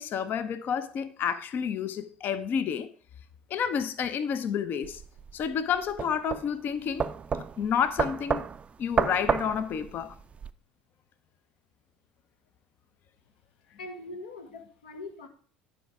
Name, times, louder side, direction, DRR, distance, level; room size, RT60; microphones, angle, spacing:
voice 1, 0.0-2.9 3.5-5.0 5.3-8.5 8.8-10.1, left 7 dB, 40° left, 0.6 m, -30 dB
sound 1, 4.8-10.5, right 6 dB, 25° right, 0.4 m, -31 dB
voice 2, 13.8-15.3, left 2 dB, 70° left, 1.1 m, -42 dB
10.0 x 4.8 x 4.7 m
figure-of-eight pair, 65°, 5 cm